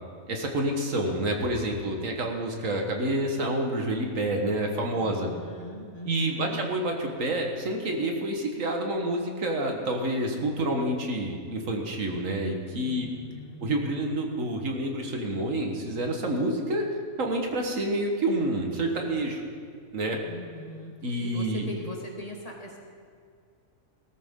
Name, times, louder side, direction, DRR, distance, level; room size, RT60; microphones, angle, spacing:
voice 1, 0.3-5.3 6.1-13.1 13.6-16.9 17.2-19.4 19.9-20.2 21.0-21.6, right 1 dB, 70° right, 2 dB, 1.8 m, -28 dB
voice 2, 4.9-6.6 12.8-13.7 20.2-22.8, left 1 dB, 25° left, -1 dB, 1.7 m, -41 dB
18.0 x 14.0 x 3.8 m, 2.2 s
omnidirectional pair, 1.4 m